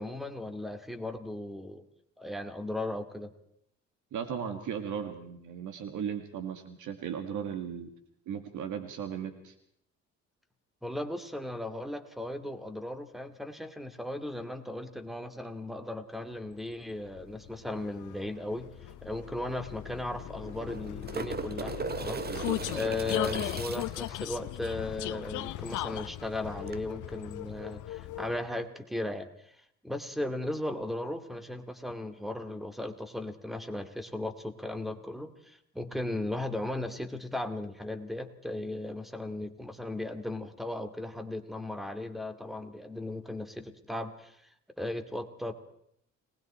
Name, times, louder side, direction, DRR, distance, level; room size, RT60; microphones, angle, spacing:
voice 1, 0.0-1.8 2.2-3.3 10.8-18.7 19.0-29.5 29.8-44.4 44.8-45.5, left 2 dB, ahead, 9 dB, 2.3 m, -36 dB
voice 2, 4.1-7.9 8.3-9.5 22.3-22.8, right 8 dB, 80° right, 8 dB, 2.1 m, -37 dB
Vehicle, 16.7-28.6, left 15 dB, 80° left, 0.7 m, -38 dB
sound 1, 18.9-19.0 19.3-19.4 20.4-24.1 26.7-26.8, right 5 dB, 35° right, 1.2 m, -38 dB
30.0 x 20.0 x 4.4 m, 0.71 s
cardioid pair, 90°, 30 cm